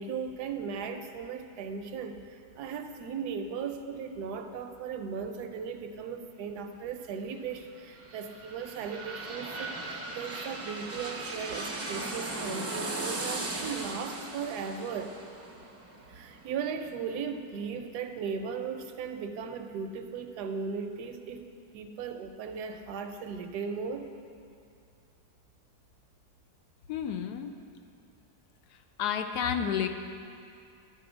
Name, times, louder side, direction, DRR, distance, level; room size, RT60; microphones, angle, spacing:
voice 1, 0.0-15.2 16.1-21.5 21.7-24.1, right 6 dB, 80° right, 7 dB, 1.2 m, -37 dB
sound 1, 7.7-17.3 17.7-17.8, right 2 dB, 20° right, 0.4 m, -38 dB
voice 2, 26.9-27.5 29.0-29.9, left 8 dB, 80° left, 7 dB, 1.1 m, -30 dB
12.0 x 4.1 x 6.1 m, 2.5 s
omnidirectional pair, 1.7 m